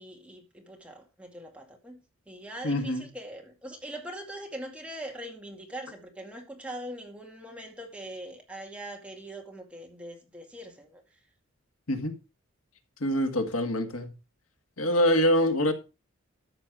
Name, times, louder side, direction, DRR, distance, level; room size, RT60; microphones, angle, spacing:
voice 1, 0.0-11.0, right 1 dB, 5° right, 2.1 m, -42 dB
voice 2, 2.6-3.1 11.9-12.2 13.0-14.1 14.8-15.7, equal, 85° left, 1.9 m, -25 dB
13.0 x 7.0 x 4.8 m
head